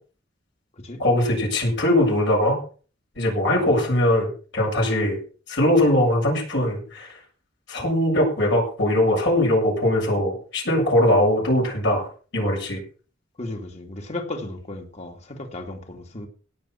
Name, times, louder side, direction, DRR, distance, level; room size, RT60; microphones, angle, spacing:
voice 1, 1.0-2.6 3.2-5.2 5.5-7.1 7.7-12.1 12.3-12.8, left 1 dB, 65° left, -1 dB, 7.5 m, -21 dB
voice 2, 13.4-16.3, left 2 dB, 35° left, 3 dB, 2.8 m, -35 dB
17.0 x 7.5 x 6.0 m, 0.40 s
head